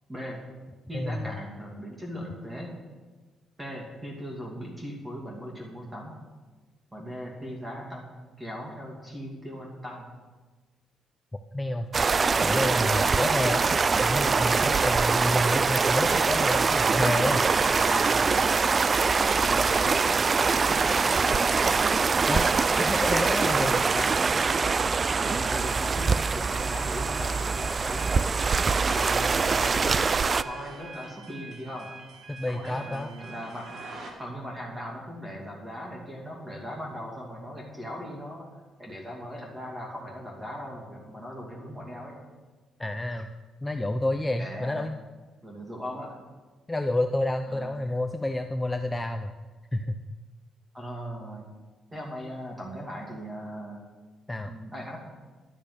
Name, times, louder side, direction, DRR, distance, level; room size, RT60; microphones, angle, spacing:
voice 1, 0.1-0.4 0.9-2.7 3.6-6.1 6.9-8.1 8.4-10.1 15.1-15.3 17.6-18.6 19.1-19.9 20.6-21.8 22.2-22.3 23.2-24.4 25.2-28.4 28.8-31.9 32.5-33.7 34.2-38.5 38.8-42.2 44.4-44.9 45.4-46.2 47.5-47.7 50.7-51.4 51.9-53.8 54.4-55.0, equal, 15° right, -1 dB, 2.4 m, -38 dB
voice 2, 0.9-1.4 11.5-11.9 12.4-13.6 14.0-17.4 22.3-23.8 32.3-33.1 42.8-43.3 43.6-45.0 46.7-49.3 49.7-50.0 54.3-54.5, left 1 dB, 15° left, 7 dB, 0.5 m, -29 dB
sound 1, 11.9-30.4, right 4 dB, 35° right, 0.3 m, -24 dB
sound 2, 16.6-34.1, right 3 dB, 55° right, 2.1 m, -44 dB
10.5 x 6.5 x 8.3 m, 1.3 s
cardioid pair, 90°, 0 cm